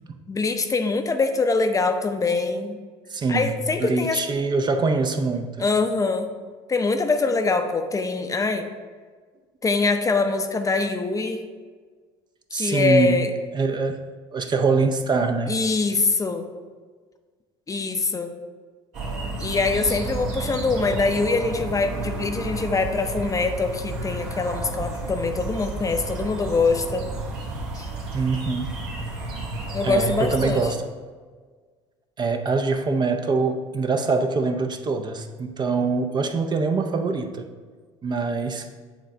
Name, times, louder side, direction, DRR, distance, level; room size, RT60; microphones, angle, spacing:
voice 1, 0.3-2.8 3.3-4.2 5.6-6.3 6.7-8.7 9.6-11.4 12.5-13.3 15.5-16.5 17.7-18.3 19.4-27.1 27.7-27.9 29.7-30.7, left 4 dB, 25° left, 7 dB, 0.6 m, -23 dB
voice 2, 3.1-5.7 12.5-13.2 13.5-14.0 14.3-15.5 28.1-28.7 29.8-30.8 32.2-37.5 38.0-38.7, right 4 dB, 30° right, 7 dB, 0.6 m, -24 dB
sound 1, 18.9-30.6, right 2 dB, 65° right, 1.9 m, -32 dB
8.1 x 3.2 x 5.1 m, 1.5 s
hypercardioid pair, 75°, 14 cm